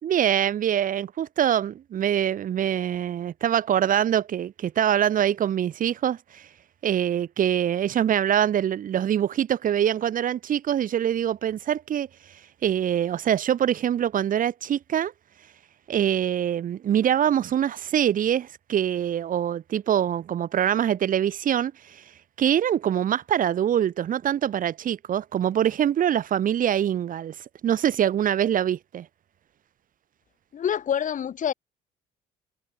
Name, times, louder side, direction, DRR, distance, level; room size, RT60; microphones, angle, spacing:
voice 1, 0.0-6.5 6.8-12.1 12.6-15.1 15.9-22.0 22.4-27.4 27.6-29.1, right 10 dB, 55° right, 3.7 m, -24 dB
voice 2, 30.5-31.5, left 9 dB, 50° left, 7.0 m, -26 dB
cardioid pair, 110°, 17 cm